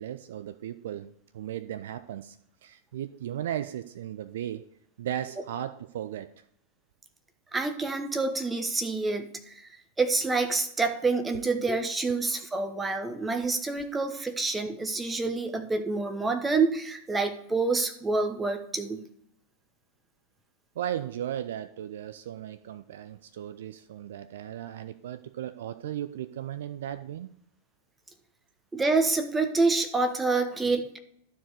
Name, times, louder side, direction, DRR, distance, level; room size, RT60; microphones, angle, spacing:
voice 1, 0.0-2.4 2.6-4.6 5.0-6.3 20.8-27.3, right 11 dB, 60° right, 12 dB, 0.4 m, -36 dB
voice 2, 7.5-9.7 10.0-19.0 28.7-31.0, right 3 dB, 10° right, 7 dB, 1.1 m, -27 dB
12.5 x 4.7 x 4.8 m, 0.71 s
figure-of-eight pair, 90°, 0 cm